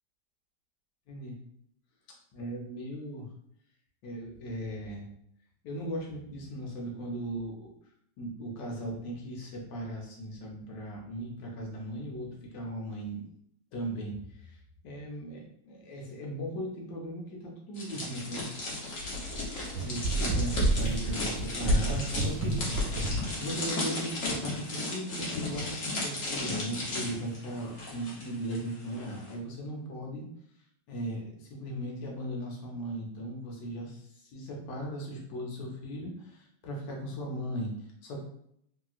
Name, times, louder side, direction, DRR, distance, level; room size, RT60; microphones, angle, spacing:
voice 1, 2.3-3.3 4.0-5.1 5.6-7.7 8.2-13.2 13.7-18.5 19.8-30.2 30.9-38.2, right 1 dB, 85° left, -1 dB, 1.5 m, -38 dB
sound 1, 17.8-28.6 28.8-29.1, left 2 dB, 55° left, 1.1 m, -35 dB
sound 2, 19.0-23.3, right 1 dB, 75° right, 1.1 m, -29 dB
3.1 x 2.8 x 2.4 m, 0.71 s
omnidirectional pair, 1.9 m